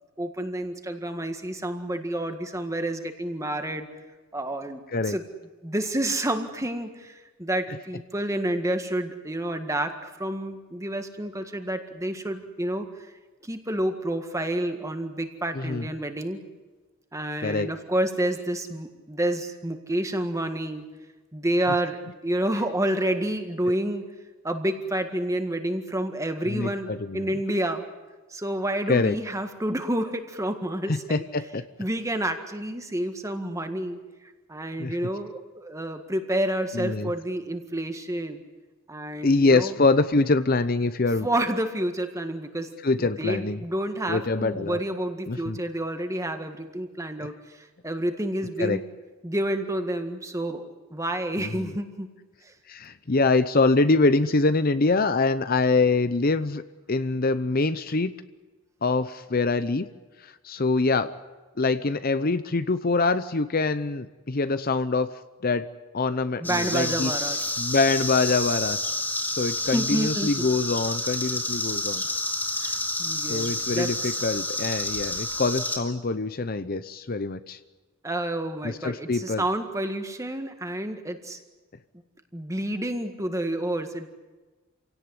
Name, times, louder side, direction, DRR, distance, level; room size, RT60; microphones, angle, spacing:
voice 1, 0.2-3.9 4.3-5.2 5.6-13.1 13.4-16.4 17.1-20.8 21.3-22.0 22.2-24.0 24.4-27.8 28.3-31.2 31.8-34.0 34.5-38.4 38.9-39.8 41.2-42.7 43.0-48.8 49.2-52.1 52.4-52.5 66.4-67.4 69.7-70.3 72.6-74.1 78.0-81.4 82.3-84.1, right 1 dB, 15° right, 7 dB, 1.8 m, -29 dB
voice 2, 15.5-15.9 17.4-17.7 26.5-27.3 28.9-29.1 30.9-31.6 34.8-35.0 36.7-37.1 39.2-41.3 42.8-43.6 44.1-44.8 45.3-45.6 47.2-47.3 48.6-48.8 51.4-51.7 52.7-56.6 56.9-58.1 58.8-59.8 60.2-61.1 61.6-65.1 65.4-65.7 65.9-67.1 67.6-68.8 69.3-72.0 73.3-77.6 78.6-79.4, left 3 dB, 45° left, 12 dB, 0.7 m, -24 dB
sound 1, 66.4-75.8, left 2 dB, 10° left, 2.9 m, -29 dB
27.0 x 17.5 x 9.8 m, 1.3 s
head